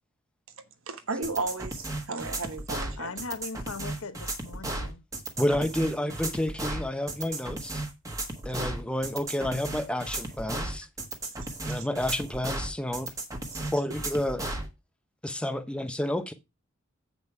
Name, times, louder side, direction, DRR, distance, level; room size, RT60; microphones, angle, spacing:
voice 1, 0.9-3.1 8.6-8.7 11.7-11.9 13.5-13.7, right 3 dB, 75° right, 1.2 m, -34 dB
sound 1, 1.2-14.7, right 2 dB, 15° right, 1.3 m, -34 dB
voice 2, 3.0-5.0, left 4 dB, 75° left, 1.0 m, -39 dB
voice 3, 5.4-7.8 8.4-10.9 11.7-13.1 13.7-14.4 15.2-16.3, left 1 dB, 5° left, 0.8 m, -30 dB
7.9 x 5.4 x 4.7 m
head